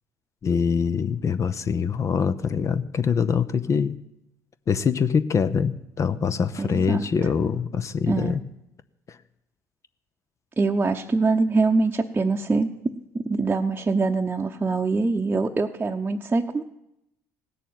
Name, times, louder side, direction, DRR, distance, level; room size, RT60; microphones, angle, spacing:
voice 1, 0.4-4.0 4.7-8.4 9.1-9.2, left 6 dB, 40° left, 12 dB, 0.7 m, -24 dB
voice 2, 6.6-7.1 8.1-8.3 10.6-16.6, right 3 dB, 20° right, 1 dB, 0.9 m, -24 dB
16.5 x 6.8 x 9.3 m, 0.86 s
supercardioid pair, 70°, 8 cm